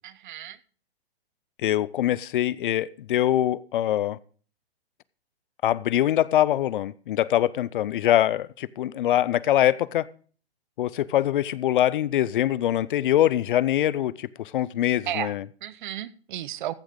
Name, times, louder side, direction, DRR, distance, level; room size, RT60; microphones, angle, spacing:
voice 1, 0.0-0.6 15.1-15.3 15.6-16.7, right 12 dB, 50° right, 0.8 m, -33 dB
voice 2, 1.6-4.2 5.6-10.1 10.8-15.5, left 12 dB, 55° left, 0.6 m, -23 dB
14.5 x 6.3 x 5.1 m
hypercardioid pair, 140°, 32 cm